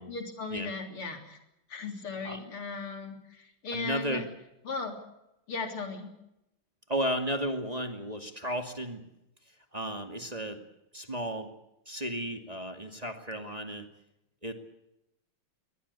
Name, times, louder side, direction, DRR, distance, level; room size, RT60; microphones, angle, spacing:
voice 1, 0.1-1.4 1.7-4.2 4.6-4.9 5.5-6.1, left 4 dB, 80° left, 5 dB, 4.3 m, -37 dB
voice 2, 3.7-4.2 6.9-9.0 9.7-10.6 10.9-11.5 11.9-13.9 14.4-14.5, equal, 20° right, 5 dB, 2.3 m, -34 dB
24.0 x 18.5 x 8.4 m, 0.87 s
omnidirectional pair, 2.3 m